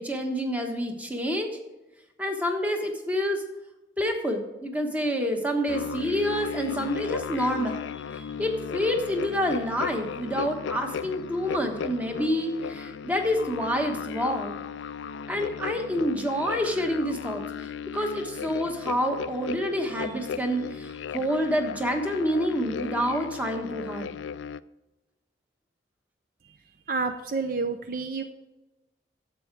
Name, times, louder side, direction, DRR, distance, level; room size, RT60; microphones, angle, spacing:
voice 1, 0.0-1.6 2.2-3.4 4.0-14.5 15.3-24.2, equal, 10° right, 3 dB, 1.2 m, -28 dB
sound 1, 5.7-24.6, left 6 dB, 80° left, 0.3 m, -36 dB
voice 2, 26.9-28.2, right 4 dB, 45° right, 8 dB, 0.5 m, -29 dB
10.5 x 7.8 x 4.7 m, 1.1 s
head